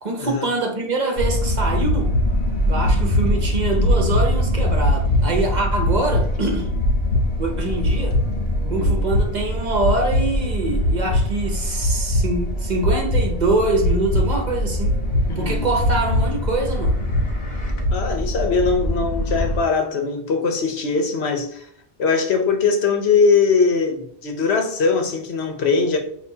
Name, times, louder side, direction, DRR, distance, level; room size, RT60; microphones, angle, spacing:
voice 1, 0.0-2.1 2.7-6.7 7.4-8.2 8.7-15.0 15.4-17.0, right 2 dB, 45° right, 0.9 m, -24 dB
sound 1, 1.2-19.6, left 1 dB, 45° left, 1.0 m, -21 dB
voice 2, 8.6-9.0 15.3-15.6 17.9-21.7 22.0-26.0, left 5 dB, 80° left, 1.1 m, -21 dB
6.6 x 2.6 x 2.8 m
omnidirectional pair, 1.1 m